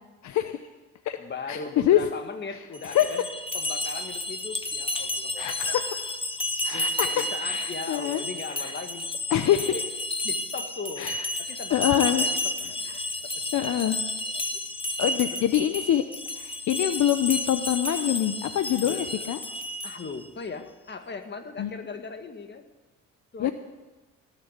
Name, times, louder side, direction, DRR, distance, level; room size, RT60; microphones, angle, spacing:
voice 1, 0.2-0.6 1.1-1.2 1.5-2.0 2.9-3.1 5.4-5.8 6.6-8.2 9.3-9.7 11.0-11.3 11.7-12.2 13.5-14.0 15.0-16.0 16.4-19.4 21.6-21.7 23.4-23.5, left 11 dB, 70° left, 9 dB, 0.8 m, -25 dB
voice 2, 1.2-3.2 3.5-5.8 6.7-9.1 9.5-9.9 10.2-11.1 11.4-13.0 13.5-14.0 14.2-14.4 15.3-15.4 18.8-19.3 19.8-22.6 23.3-23.5, left 4 dB, 35° left, 7 dB, 1.8 m, -38 dB
sound 1, 2.7-20.2, left 1 dB, 20° left, 1.2 m, -31 dB
19.0 x 6.9 x 8.3 m, 1.2 s
cardioid pair, 90°, 30 cm